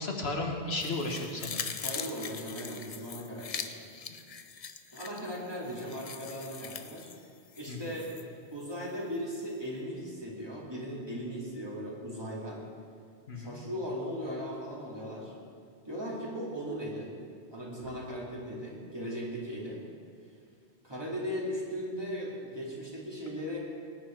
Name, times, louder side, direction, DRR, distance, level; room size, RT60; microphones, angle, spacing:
voice 1, 0.0-1.7 4.1-4.2 7.7-8.0 13.3-13.6, left 2 dB, 75° left, 2 dB, 1.6 m, -34 dB
sound 1, 0.8-8.2 8.6-8.7, left 6 dB, 45° left, 0.6 m, -42 dB
voice 2, 1.8-3.8 4.9-7.1 7.6-8.1 8.5-12.6 13.3-15.3 15.8-17.1 17.5-19.8 20.8-23.6, equal, 25° right, -5 dB, 2.8 m, -38 dB
19.0 x 9.9 x 4.6 m, 2.2 s
omnidirectional pair, 1.1 m